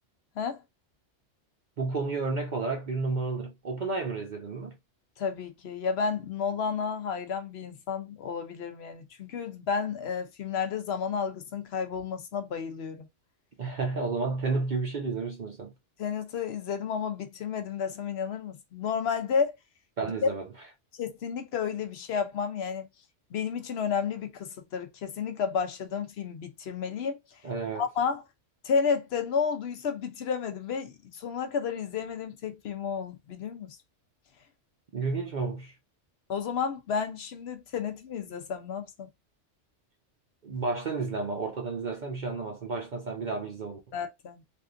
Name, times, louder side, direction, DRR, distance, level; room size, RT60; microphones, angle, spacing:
voice 1, 1.8-4.7 13.6-15.7 20.0-20.4 27.4-27.8 34.9-35.7 40.4-43.8, right 4 dB, 50° right, 0.6 m, -31 dB
voice 2, 5.2-13.1 16.0-19.6 21.0-22.9 23.3-27.2 27.7-28.2 28.6-33.8 36.3-39.1 43.9-44.4, left 6 dB, 65° left, 0.8 m, -31 dB
3.5 x 2.4 x 2.5 m
omnidirectional pair, 1.2 m